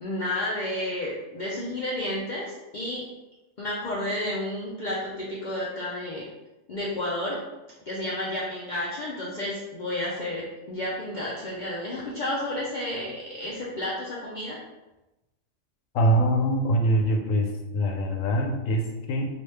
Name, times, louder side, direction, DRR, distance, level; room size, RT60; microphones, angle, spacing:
voice 1, 0.0-3.0 3.6-6.2 6.7-7.4 7.9-14.6, left 1 dB, 55° left, -6 dB, 0.5 m, -31 dB
voice 2, 15.9-19.3, right 1 dB, 90° left, 2 dB, 1.0 m, -24 dB
2.9 x 2.3 x 3.2 m, 1.0 s
omnidirectional pair, 1.3 m